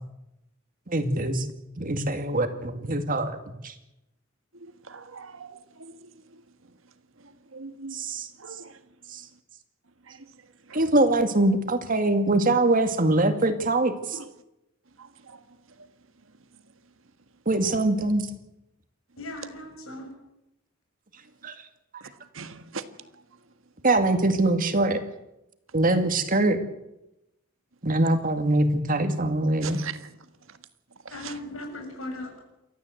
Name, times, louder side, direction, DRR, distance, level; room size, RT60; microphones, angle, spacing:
voice 1, 0.9-1.5 1.8-3.4 3.6-3.7 7.9-8.3 9.1-9.2 10.7-14.2 17.5-18.3 21.4-21.5 23.8-25.0 25.7-26.6 27.8-29.8, right 2 dB, 40° right, 2.2 m, -23 dB
voice 2, 4.6-5.9 7.5-8.0 8.4-8.7 10.7-10.8 14.1-14.3 15.3-15.4 22.3-22.8 29.6-30.0 31.2-31.3, right 5 dB, 75° right, 1.7 m, -39 dB
voice 3, 19.2-20.1 31.1-32.4, left 1 dB, 85° left, 6.9 m, -37 dB
28.5 x 13.5 x 8.1 m
head